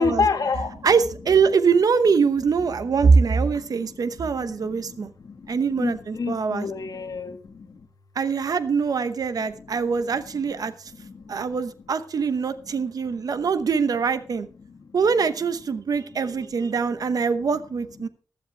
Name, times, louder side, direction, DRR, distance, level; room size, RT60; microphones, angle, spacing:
voice 1, 0.0-0.9 2.9-7.8 9.4-9.7 10.1-11.5 13.1-13.5 14.6-15.0 16.3-16.4, left 4 dB, 60° left, 4 dB, 1.7 m, -31 dB
voice 2, 0.8-5.1 5.5-6.7 8.2-10.7 11.3-14.5 14.9-18.1, right 5 dB, 60° right, 12 dB, 0.9 m, -23 dB
15.5 x 12.5 x 3.4 m, 0.38 s
wide cardioid pair, 165°, 7 cm